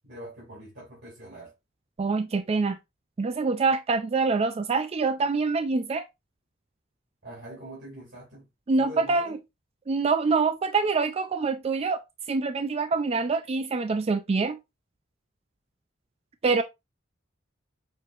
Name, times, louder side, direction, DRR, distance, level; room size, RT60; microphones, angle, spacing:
voice 1, 0.0-1.5 7.2-8.5 8.8-9.4, right 1 dB, 65° right, 2.5 m, -43 dB
voice 2, 2.0-2.8 3.2-6.0 8.7-9.4 9.9-12.0 12.3-14.6 16.4-16.6, right 4 dB, 35° right, 0.4 m, -25 dB
6.2 x 2.9 x 2.4 m
head